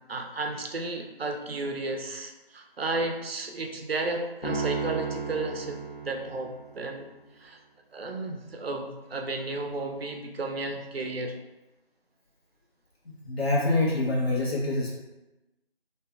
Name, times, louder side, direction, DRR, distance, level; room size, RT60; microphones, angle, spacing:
voice 1, 0.1-7.1 7.4-7.6 7.9-11.4, right 2 dB, 75° right, 3 dB, 0.5 m, -33 dB
Piano, 4.4-6.9, right 4 dB, 60° left, 0.8 m, -33 dB
voice 2, 13.0-15.0, left 2 dB, 85° left, -4 dB, 1.0 m, -26 dB
2.5 x 2.3 x 2.3 m, 1.0 s
figure-of-eight pair, 175°, 30 cm